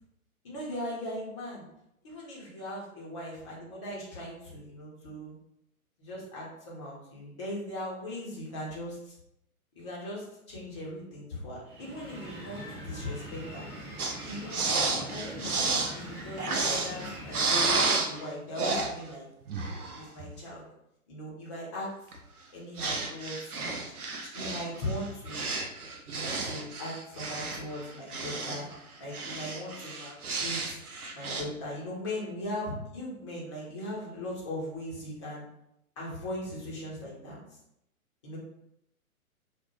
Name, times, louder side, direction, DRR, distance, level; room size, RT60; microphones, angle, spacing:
voice 1, 0.4-1.6 2.0-5.3 6.0-9.1 9.8-13.7 14.3-19.3 19.9-20.6 21.1-21.9 22.5-23.9 24.2-25.5 26.0-28.7 29.0-30.8 31.1-35.4 36.0-37.4 38.2-38.4, left 1 dB, 20° left, -5 dB, 0.5 m, -39 dB
sound 1, 11.7-17.9, right 1 dB, 35° right, 0.9 m, -43 dB
sound 2, 14.0-18.3 18.6-18.9 19.5-20.3 22.1-22.2 22.8-28.8 29.1-31.4, right 3 dB, 85° right, 0.6 m, -31 dB
2.3 x 2.1 x 3.0 m, 0.81 s
figure-of-eight pair, 120°, 43 cm